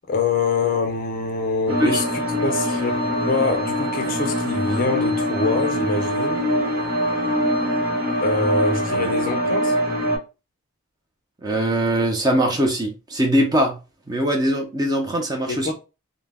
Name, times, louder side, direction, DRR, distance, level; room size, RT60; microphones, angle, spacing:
voice 1, 0.1-6.4 8.2-9.8 15.5-15.7, left 3 dB, 40° left, 0.4 m, -24 dB
sound 1, 1.7-10.2, equal, 65° right, 0.9 m, -23 dB
voice 2, 11.4-13.8 14.1-15.7, right 1 dB, 15° right, 0.4 m, -21 dB
2.1 x 2.0 x 3.3 m
head